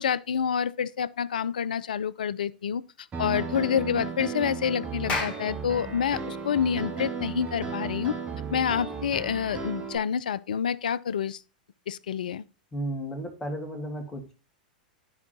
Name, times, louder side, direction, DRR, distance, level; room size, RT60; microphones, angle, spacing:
voice 1, 0.0-2.8 3.2-8.2 8.5-11.4 11.9-12.4, left 7 dB, 70° left, 0.4 m, -28 dB
Piano, 3.1-10.0, right 5 dB, 25° right, 2.3 m, -35 dB
Clapping, 5.1-9.8, left 3 dB, 30° left, 1.9 m, -37 dB
voice 2, 12.7-14.3, right 1 dB, 10° left, 2.1 m, -34 dB
12.0 x 4.7 x 2.9 m
figure-of-eight pair, 95°, 5 cm